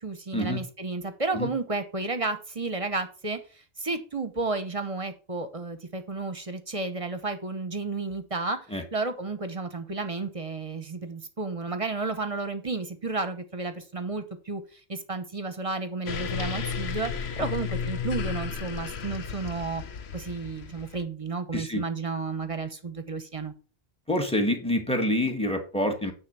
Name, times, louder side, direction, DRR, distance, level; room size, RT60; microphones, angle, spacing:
voice 1, 0.0-3.4 3.8-8.6 8.9-14.6 14.9-17.1 17.4-19.8 20.1-23.5, right 3 dB, 35° right, 9 dB, 1.0 m, -32 dB
sound 1, 16.1-21.0, left 6 dB, 75° left, 1.1 m, -33 dB
voice 2, 21.5-21.8 24.1-26.1, left 1 dB, 5° left, 5 dB, 1.4 m, -26 dB
9.6 x 3.8 x 6.8 m, 0.37 s
omnidirectional pair, 1.1 m